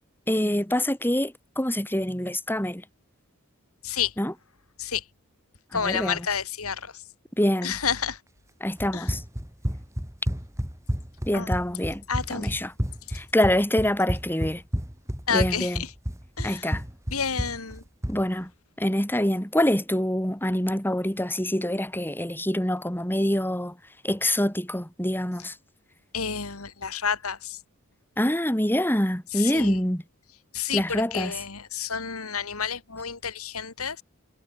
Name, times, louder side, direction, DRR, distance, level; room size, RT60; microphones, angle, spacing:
voice 1, 0.3-2.8 4.2-4.3 5.7-6.3 7.4-7.7 8.6-9.2 11.3-12.0 12.3-12.7 13.1-14.6 15.3-15.8 16.4-16.8 18.1-18.5 18.8-23.8 24.0-25.5 28.2-30.0 30.7-31.3, left 1 dB, 10° left, 3.5 m, -25 dB
voice 2, 5.7-7.0 7.6-8.2 8.9-9.1 11.3-11.5 12.1-12.6 15.3-15.9 16.4-16.7 17.1-17.8 26.1-27.6 29.3-29.8 30.5-34.0, left 7 dB, 90° left, 2.7 m, -30 dB
Run, 8.8-18.2, equal, 15° right, 3.7 m, -30 dB
head